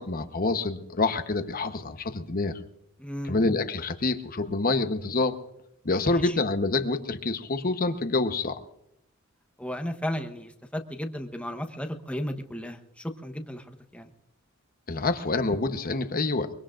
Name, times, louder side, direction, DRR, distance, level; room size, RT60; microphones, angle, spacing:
voice 1, 0.0-2.6 3.3-5.4 5.8-8.6 14.9-16.5, left 3 dB, 45° left, 9 dB, 1.0 m, -27 dB
voice 2, 3.0-3.3 6.1-6.4 9.6-14.1, equal, 5° left, 5 dB, 1.1 m, -34 dB
24.0 x 23.5 x 2.5 m, 0.80 s
head